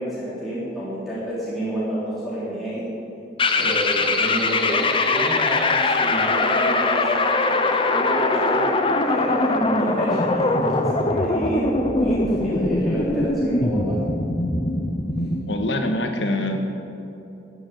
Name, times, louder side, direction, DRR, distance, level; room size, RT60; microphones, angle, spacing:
voice 1, 0.0-2.8 3.5-8.8 9.0-14.0, equal, ahead, -11 dB, 3.6 m, -29 dB
sound 1, 3.4-15.5, left 2 dB, 30° left, 0.8 m, -22 dB
voice 2, 15.4-16.6, left 1 dB, 90° left, 4 dB, 1.7 m, -24 dB
14.0 x 7.5 x 8.8 m, 2.8 s
head